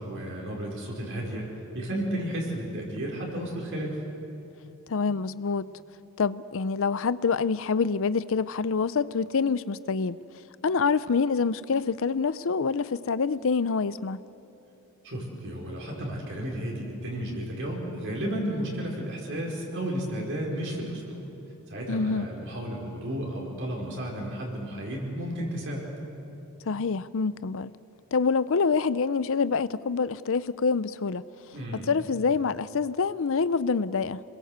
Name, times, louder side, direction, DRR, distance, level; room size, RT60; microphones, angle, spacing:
voice 1, 0.0-1.4 1.7-4.0 15.0-21.2 21.7-25.9 31.5-31.9, right 1 dB, 60° right, -2 dB, 5.0 m, -33 dB
voice 2, 4.9-5.7 6.2-10.2 10.6-14.2 21.9-22.3 26.7-27.7 28.1-31.2 31.9-34.2, left 5 dB, 65° left, 16 dB, 0.6 m, -26 dB
27.5 x 21.0 x 8.1 m, 2.9 s
head